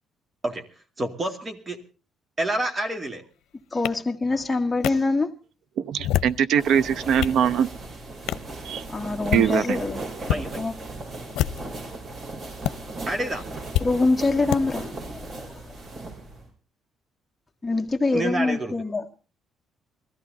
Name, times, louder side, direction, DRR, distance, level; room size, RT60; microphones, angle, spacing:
voice 1, 1.0-1.8 2.4-3.2 10.3-10.5 13.1-13.4 18.1-18.7, right 1 dB, 25° right, 2.3 m, -28 dB
voice 2, 3.7-5.3 8.9-10.7 13.8-15.5 17.6-19.0, left 3 dB, 15° left, 1.8 m, -25 dB
sound 1, 3.8-3.9 4.8-4.9 5.9-6.4 6.9-7.4 8.3-8.5 9.1-9.5 10.2-10.4 11.3-11.8 12.6-12.7 13.7-13.9 14.5-14.6, left 13 dB, 85° left, 0.7 m, -26 dB
voice 3, 5.8-7.7 8.6-8.8 9.3-9.8, right 8 dB, 70° right, 0.8 m, -22 dB
sound 2, 6.6-16.5, right 2 dB, 45° right, 6.7 m, -37 dB
22.0 x 14.0 x 4.0 m
cardioid pair, 115°, 0 cm